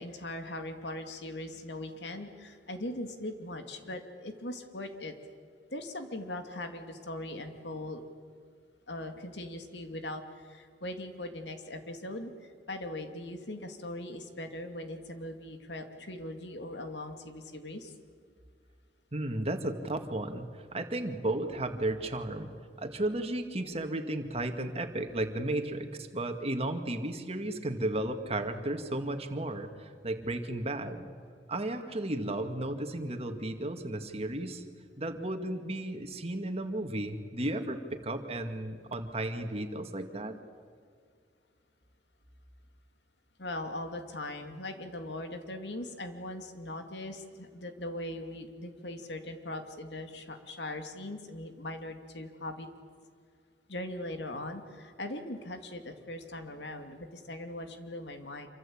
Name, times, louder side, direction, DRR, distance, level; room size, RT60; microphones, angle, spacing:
voice 1, 0.0-5.1 5.7-8.0 8.9-12.3 12.7-17.9 43.4-52.7 53.7-58.5, left 1 dB, 75° left, 6 dB, 2.5 m, -40 dB
voice 2, 19.1-22.5 22.8-31.1 31.5-34.6 35.0-40.4, right 1 dB, 35° right, 6 dB, 2.2 m, -34 dB
27.0 x 24.5 x 8.7 m, 2.2 s
head